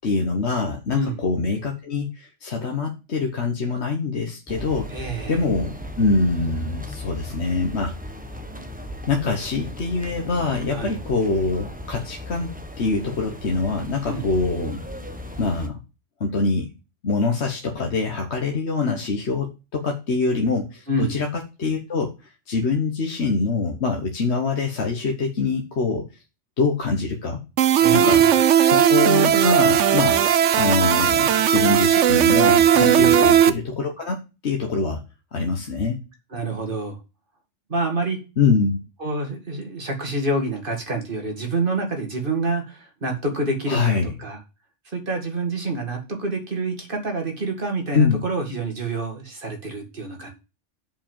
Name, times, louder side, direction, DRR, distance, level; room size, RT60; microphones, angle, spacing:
voice 1, 0.0-4.9 5.3-7.9 9.1-14.8 15.4-15.7 16.2-16.7 17.0-22.1 22.5-26.1 26.6-27.4 27.9-28.2 28.6-30.2 30.6-34.2 34.4-35.0 35.3-36.0 38.4-38.8 43.7-44.1 47.9-48.2, left 4 dB, 65° left, 2 dB, 1.5 m, -24 dB
voice 2, 0.9-1.2 4.9-5.4 10.7-11.0 14.0-14.3 20.9-21.2 27.8-28.4 32.7-33.4 36.3-37.0 37.7-38.2 39.0-44.4 44.9-50.3, right 2 dB, 45° right, 2 dB, 2.5 m, -27 dB
sound 1, 4.5-15.7, left 1 dB, 5° right, 1.0 m, -37 dB
sound 2, 27.6-33.5, right 9 dB, 80° right, 1.0 m, -17 dB
6.9 x 5.6 x 7.4 m, 0.29 s
omnidirectional pair, 1.2 m